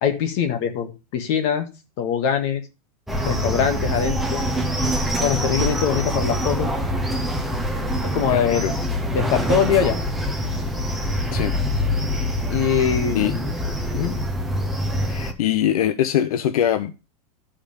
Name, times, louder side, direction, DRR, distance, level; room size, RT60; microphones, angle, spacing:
voice 1, 0.0-1.7 2.0-2.6 3.2-4.4 5.2-6.7 8.1-8.6 9.1-10.0 12.5-13.4 13.9-14.2, left 8 dB, 40° left, 6 dB, 1.7 m, -22 dB
sound 1, 3.1-15.3, equal, ahead, 0.6 m, -25 dB
voice 2, 8.3-8.7 11.3-11.6 13.1-13.4 15.0-17.0, left 10 dB, 70° left, 10 dB, 0.8 m, -23 dB
13.0 x 5.2 x 5.0 m, 0.30 s
supercardioid pair, 170°, 20 cm